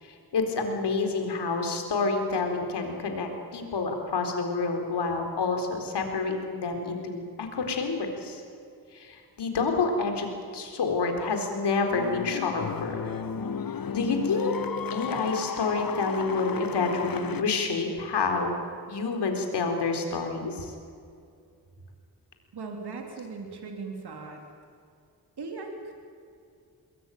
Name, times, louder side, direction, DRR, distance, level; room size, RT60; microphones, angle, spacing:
voice 1, 0.0-8.4 8.9-10.3 10.5-13.1 13.9-14.6 14.9-18.6 18.9-20.7, left 4 dB, 80° left, 4 dB, 4.0 m, -28 dB
sound 1, 11.9-17.4, left 6 dB, 60° left, 1.4 m, -34 dB
voice 2, 22.5-24.4 25.4-25.9, right 4 dB, 70° right, 3 dB, 3.4 m, -38 dB
22.5 x 20.5 x 9.2 m, 2.4 s
cardioid pair, 50°, 40 cm